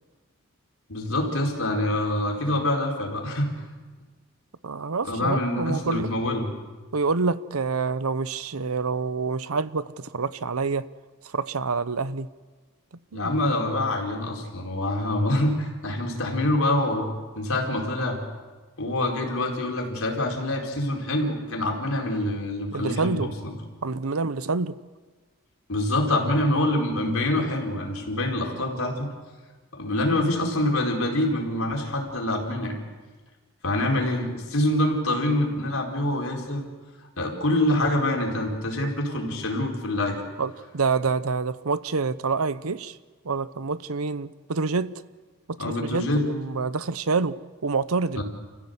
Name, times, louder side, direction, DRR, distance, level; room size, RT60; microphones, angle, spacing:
voice 1, 0.9-3.5 5.0-6.5 13.1-18.2 18.8-23.6 25.7-29.1 29.7-32.8 33.6-36.6 37.2-40.2 45.6-46.2 48.1-48.2, left 1 dB, 80° left, 0 dB, 4.7 m, -25 dB
voice 2, 4.6-6.1 6.9-10.8 11.2-12.3 13.1-13.3 22.7-23.3 23.8-24.8 40.4-43.0 43.2-45.0 45.5-48.2, right 4 dB, 90° right, 15 dB, 0.8 m, -27 dB
29.5 x 15.5 x 8.1 m, 1.4 s
head